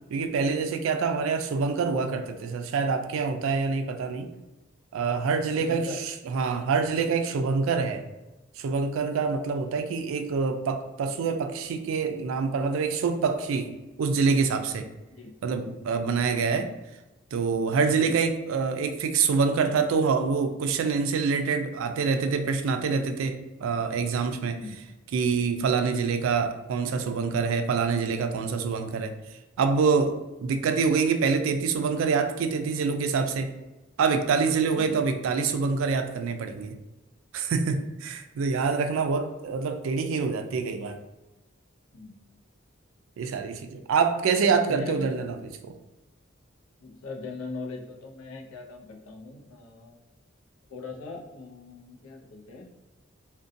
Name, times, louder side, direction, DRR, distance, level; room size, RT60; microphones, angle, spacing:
voice 1, 0.1-4.3 4.9-5.9 6.3-8.1 8.6-13.7 14.0-14.9 15.4-16.7 17.3-24.6 25.1-29.1 29.6-33.5 34.0-36.8 37.3-41.0 43.2-45.4 45.6-45.7, right 5 dB, 80° right, 7 dB, 0.3 m, -26 dB
voice 2, 5.6-6.0 15.1-15.4 24.5-25.0 34.7-35.0 41.9-42.4 44.6-45.1 46.8-50.0 50.7-52.7, left 3 dB, 85° left, -1 dB, 0.5 m, -40 dB
2.5 x 2.1 x 2.5 m, 1.0 s
head